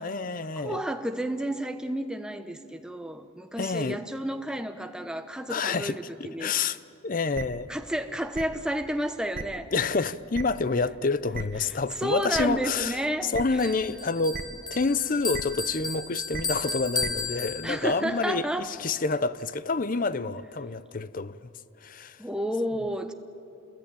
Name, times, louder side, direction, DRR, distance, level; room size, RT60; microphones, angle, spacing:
voice 1, 0.0-0.8 3.6-4.0 5.5-7.7 9.7-13.0 13.2-14.4 14.7-21.4 21.8-22.2, left 4 dB, 40° left, 0.6 m, -28 dB
voice 2, 0.5-6.5 7.7-9.7 11.6-13.7 17.6-18.7 22.2-23.1, equal, 5° right, 0.9 m, -31 dB
sound 1, 7.3-7.4 8.3-8.4 9.3-9.4 10.3-10.4 11.3-11.4 12.3-12.4 13.3-13.4 14.3-14.4 15.3-15.4 16.3-16.4 17.0-17.1, right 3 dB, 40° right, 1.1 m, -34 dB
Bell, 13.6-18.1, left 4 dB, 20° left, 1.0 m, -34 dB
27.0 x 21.0 x 9.0 m
head